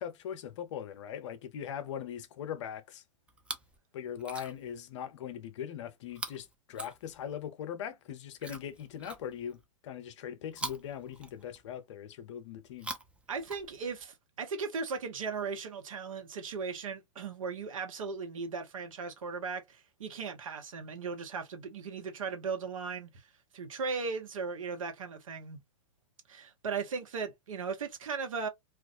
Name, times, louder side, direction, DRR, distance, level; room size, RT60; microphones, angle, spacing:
voice 1, 0.0-3.0 3.9-9.6 9.8-12.9, left 9 dB, 60° left, 0.7 m, -40 dB
Chewing mastication, 3.3-3.8 4.1-4.8 6.1-7.5 8.4-9.6 10.5-11.8 12.7-14.1 15.0-15.1, right 2 dB, 5° right, 0.4 m, -44 dB
voice 2, 13.3-23.2 23.5-25.6 26.3-28.5, right 5 dB, 75° right, 0.8 m, -37 dB
2.4 x 2.1 x 2.5 m
hypercardioid pair, 110°, 17 cm